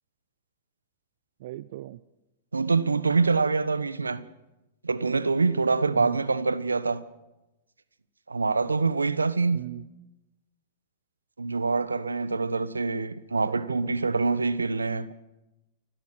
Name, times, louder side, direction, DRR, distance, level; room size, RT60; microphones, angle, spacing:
voice 1, 1.4-2.0 5.9-6.2 9.5-9.8 13.5-13.9, right 16 dB, 55° right, 0.7 m, -38 dB
voice 2, 2.5-4.2 4.8-7.0 8.3-9.6 11.4-15.1, right 4 dB, 90° right, 1.2 m, -25 dB
29.5 x 12.5 x 7.7 m
figure-of-eight pair, 105°, 0 cm